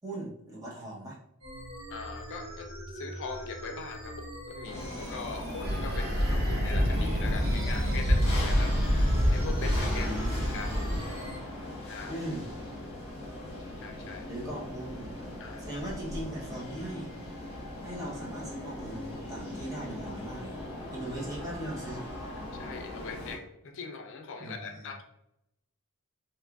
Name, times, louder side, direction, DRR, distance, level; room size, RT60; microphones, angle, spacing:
voice 1, 0.0-1.2 10.0-10.4 12.1-12.4 14.3-15.1 15.6-17.1 17.8-20.6 20.9-22.0 24.4-24.9, right 1 dB, 15° right, -5 dB, 0.8 m, -39 dB
sound 1, 1.4-11.4, equal, 90° right, 1.3 m, -43 dB
voice 2, 1.9-8.7 9.3-10.8 11.9-12.1 13.8-14.3 15.4-15.7 22.6-25.0, left 4 dB, 60° left, 5 dB, 0.5 m, -41 dB
sound 2, 4.6-23.3, left 1 dB, 25° left, 1.0 m, -39 dB
sound 3, 5.6-11.0, equal, 45° right, 0.9 m, -27 dB
2.9 x 2.4 x 3.4 m, 0.82 s
head